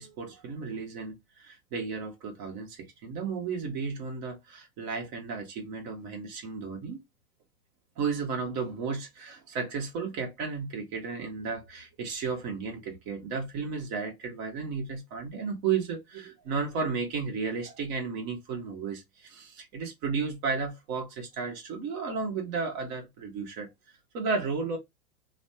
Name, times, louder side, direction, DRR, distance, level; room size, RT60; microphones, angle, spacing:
voice 1, 0.0-7.0 8.0-23.7 24.1-24.8, right 5 dB, 40° right, 1.3 m, -33 dB
3.1 x 2.3 x 2.7 m
hypercardioid pair, 105°, 45 cm